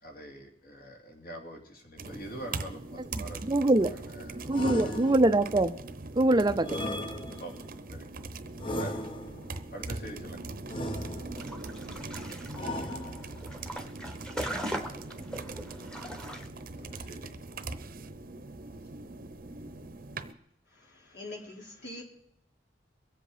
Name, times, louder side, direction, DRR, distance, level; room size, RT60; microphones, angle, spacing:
voice 1, 0.0-5.1 7.4-7.6 7.9-8.1 8.7-9.0 9.7-10.5 16.8-17.4, right 1 dB, 55° left, 1 dB, 3.0 m, -45 dB
sound 1, 2.0-20.3, right 3 dB, 55° right, 0.9 m, -41 dB
voice 2, 3.5-3.9 4.5-5.7 6.1-6.7, right 2 dB, 25° right, 11 dB, 0.5 m, -23 dB
sound 2, 4.5-5.6 6.6-7.7 8.6-9.6 10.7-11.6 12.5-13.5, left 1 dB, 30° left, 1.0 m, -36 dB
sound 3, 11.4-16.5, equal, 5° left, 1.2 m, -40 dB
voice 3, 20.7-22.0, left 2 dB, 75° left, -1 dB, 4.1 m, -44 dB
23.5 x 7.8 x 5.0 m, 0.75 s
head